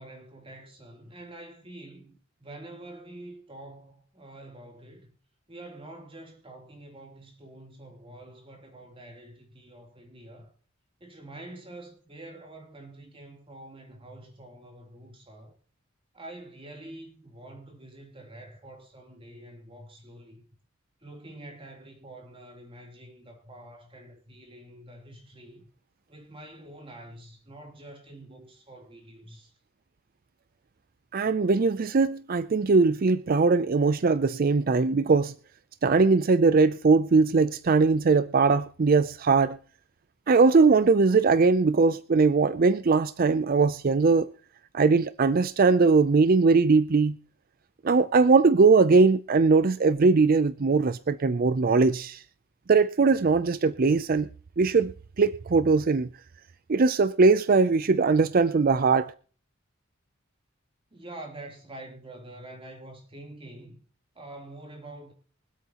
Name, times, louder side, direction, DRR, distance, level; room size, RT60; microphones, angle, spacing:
voice 1, 0.0-5.1 5.5-10.5 11.0-15.6 16.1-20.4 21.0-25.7 26.1-29.6 60.9-63.8 64.1-65.1, right 1 dB, 25° right, 3.2 m, -46 dB
voice 2, 31.1-35.3 35.8-39.6 40.3-44.3 44.7-47.2 47.8-52.2 52.7-54.3 54.6-54.9 55.2-56.1 56.7-59.1, right 4 dB, 45° right, 0.5 m, -21 dB
24.5 x 8.4 x 2.9 m
head